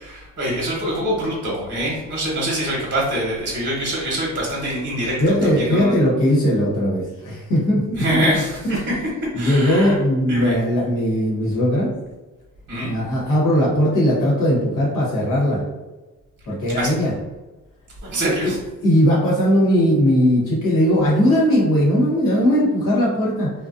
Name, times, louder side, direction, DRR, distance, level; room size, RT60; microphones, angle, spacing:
voice 1, 0.0-5.9 7.9-8.9 9.3-10.0 10.3-10.6 12.7-12.9 16.8-16.9 18.0-18.6, equal, 35° right, -4 dB, 1.0 m, -24 dB
voice 2, 5.2-8.0 9.3-11.9 12.8-15.6 16.5-17.1 18.4-18.5 18.8-23.5, equal, 70° left, -6 dB, 1.1 m, -18 dB
2.5 x 2.2 x 2.4 m, 1.1 s
cardioid pair, 75°, 33 cm